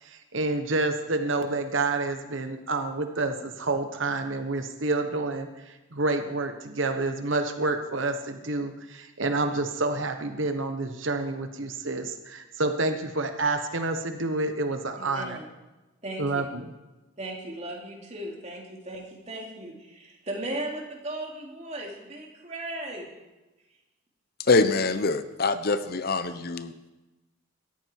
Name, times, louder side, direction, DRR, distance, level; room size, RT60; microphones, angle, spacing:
voice 1, 0.0-15.4 16.2-16.7, right 2 dB, 70° right, 7 dB, 1.2 m, -28 dB
voice 2, 15.0-15.4 16.0-16.4 17.2-23.1, right 1 dB, 35° right, -1 dB, 3.1 m, -37 dB
voice 3, 24.4-26.9, left 3 dB, 50° left, 12 dB, 0.8 m, -24 dB
18.0 x 14.0 x 4.7 m, 1.1 s
head